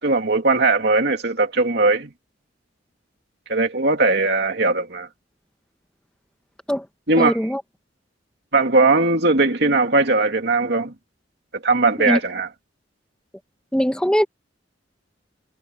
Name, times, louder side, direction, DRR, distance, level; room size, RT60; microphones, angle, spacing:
voice 1, 0.0-2.1 3.5-5.1 7.1-7.3 8.5-10.9 11.6-12.5, right 3 dB, 65° right, 2.7 m, -19 dB
voice 2, 7.2-7.6 12.0-12.2 13.7-14.2, equal, 5° left, 1.8 m, -20 dB
head